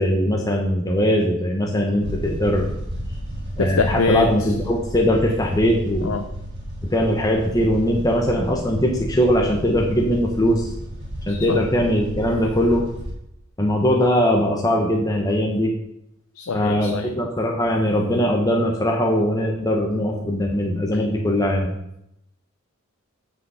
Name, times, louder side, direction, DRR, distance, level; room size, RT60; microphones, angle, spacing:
voice 1, 0.0-2.7 3.6-6.1 6.9-10.7 11.3-12.9 13.6-15.7 16.5-21.7, equal, 15° left, 0 dB, 1.0 m, -20 dB
sound 1, 2.0-13.1, equal, 25° right, 3.9 m, -33 dB
voice 2, 3.6-4.3 6.0-6.2 11.3-11.6 16.4-17.1, left 4 dB, 75° left, 7 dB, 0.6 m, -24 dB
8.7 x 6.2 x 5.6 m, 0.80 s
head